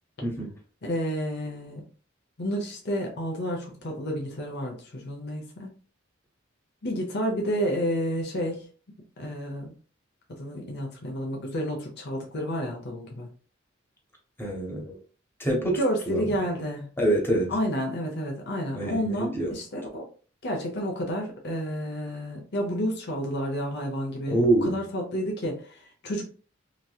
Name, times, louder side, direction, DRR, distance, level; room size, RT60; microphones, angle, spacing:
voice 1, 0.2-0.5 14.4-15.0 15.4-15.8 16.1-16.2 17.0-17.5 18.7-19.5 24.3-24.8, right 1 dB, 10° left, -1 dB, 0.9 m, -25 dB
voice 2, 0.8-1.8 2.4-5.7 6.8-8.7 9.2-9.7 10.4-13.3 15.8-16.9 17.5-20.0 20.4-26.2, equal, 55° left, 0 dB, 0.8 m, -30 dB
3.0 x 2.7 x 2.3 m, 0.39 s
head